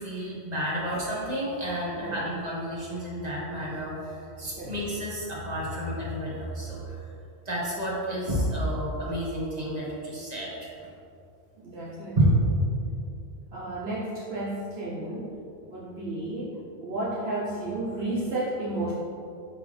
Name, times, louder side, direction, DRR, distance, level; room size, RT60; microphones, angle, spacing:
voice 1, 0.0-6.9 7.4-10.7 12.1-12.3, equal, 40° right, -6 dB, 1.5 m, -30 dB
voice 2, 11.6-12.2 13.5-15.3 15.7-18.9, right 2 dB, 70° right, -7 dB, 1.1 m, -32 dB
5.8 x 5.7 x 3.3 m, 2.6 s
omnidirectional pair, 1.1 m